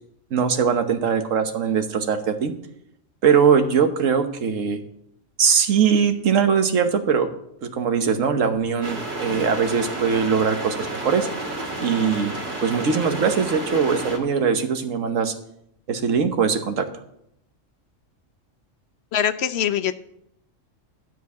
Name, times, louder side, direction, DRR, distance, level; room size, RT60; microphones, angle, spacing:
voice 1, 0.3-2.5 3.2-4.8 5.4-7.3 7.6-11.3 11.8-12.3 12.6-15.3 15.9-16.9, right 6 dB, 75° right, 7 dB, 1.4 m, -21 dB
sound 1, 8.8-14.2, right 2 dB, 40° right, 1.9 m, -31 dB
voice 2, 19.1-19.9, left 9 dB, 65° left, 12 dB, 0.8 m, -23 dB
12.5 x 4.6 x 8.2 m, 0.76 s
omnidirectional pair, 1.3 m